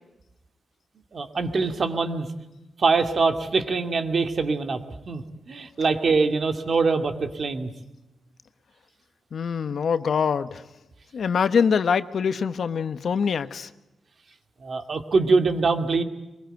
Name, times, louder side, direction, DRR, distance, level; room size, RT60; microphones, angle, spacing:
voice 1, 1.1-2.3 2.8-7.7 14.6-16.0, right 4 dB, 50° right, 6 dB, 2.4 m, -24 dB
voice 2, 9.3-10.6 11.1-13.7, left 6 dB, 65° left, 12 dB, 1.0 m, -24 dB
23.5 x 22.0 x 9.1 m, 0.96 s
wide cardioid pair, 105°, 0 cm